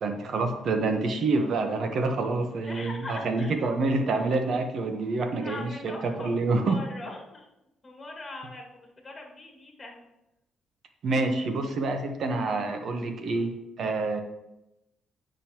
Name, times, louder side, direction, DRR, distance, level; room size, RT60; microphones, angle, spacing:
voice 1, 0.0-6.8 11.0-13.5 13.8-14.2, right 3 dB, 60° right, 5 dB, 1.0 m, -27 dB
voice 2, 2.6-3.6 5.4-7.5 7.8-10.0, left 2 dB, 25° left, 0 dB, 1.9 m, -41 dB
9.1 x 5.3 x 2.9 m, 0.90 s
cardioid pair, 90°, 0 cm